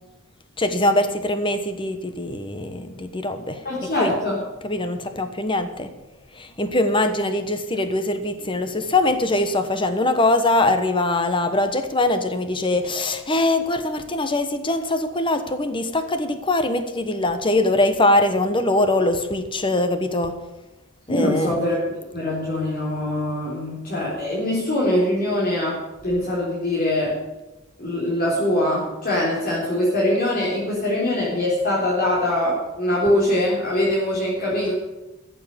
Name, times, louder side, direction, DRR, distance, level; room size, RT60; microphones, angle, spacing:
voice 1, 0.6-4.1 4.6-5.9 6.4-20.3 21.1-21.6, left 2 dB, 25° left, 9 dB, 1.1 m, -22 dB
voice 2, 3.6-4.4 21.1-27.1 27.8-34.7, left 1 dB, 45° left, -6 dB, 3.9 m, -23 dB
14.5 x 7.6 x 8.5 m, 1.0 s
head